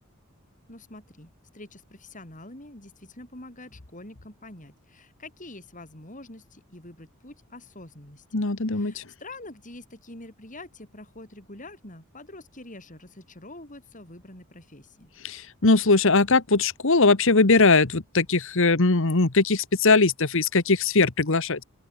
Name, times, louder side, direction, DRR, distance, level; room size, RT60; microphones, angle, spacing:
voice 1, 0.7-15.1, left 2 dB, 35° left, 7.2 m, -45 dB
voice 2, 8.3-9.0 15.2-21.6, left 3 dB, 60° left, 1.4 m, -20 dB
open air
head